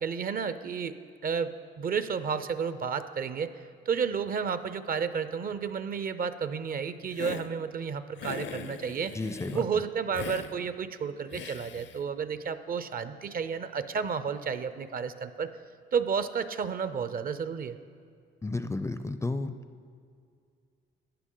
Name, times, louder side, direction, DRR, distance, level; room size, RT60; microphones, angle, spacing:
voice 1, 0.0-0.9 1.2-1.5 1.8-3.5 3.9-9.1 9.5-15.5 15.9-17.8, right 6 dB, 45° right, 12 dB, 0.5 m, -31 dB
Hiss, 7.1-7.5 8.2-9.6 10.1-10.5 11.3-12.0, left 7 dB, 65° left, 0.6 m, -40 dB
voice 2, 9.1-9.6 18.4-19.5, left 2 dB, 15° left, 11 dB, 0.4 m, -32 dB
12.5 x 9.1 x 3.8 m, 2.2 s
cardioid pair, 90°, 20 cm